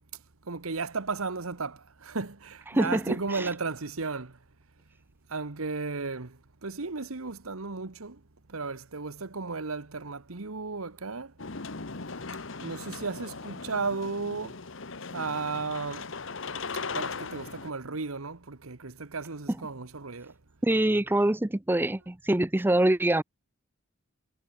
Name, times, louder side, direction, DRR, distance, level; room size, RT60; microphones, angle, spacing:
voice 1, 0.4-4.4 5.3-8.2 8.5-11.3 12.6-14.6 15.1-16.1 16.9-20.3, right 4 dB, 90° right, 1.4 m, -34 dB
voice 2, 2.7-3.5 20.6-23.2, right 1 dB, 10° right, 0.5 m, -25 dB
sound 1, 11.4-17.7, left 4 dB, 65° left, 1.4 m, -38 dB
head